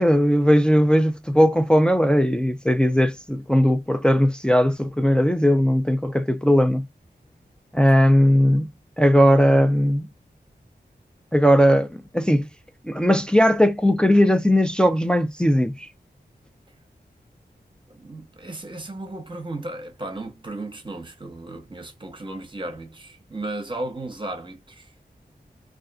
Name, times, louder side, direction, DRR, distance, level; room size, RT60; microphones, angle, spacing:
voice 1, 0.0-6.9 7.7-8.7 9.0-10.1 11.3-12.5 12.8-15.9, equal, 5° left, 0.3 m, -18 dB
voice 2, 17.9-24.9, right 2 dB, 30° right, 0.9 m, -35 dB
2.4 x 2.4 x 2.3 m
wide cardioid pair, 80°, 17 cm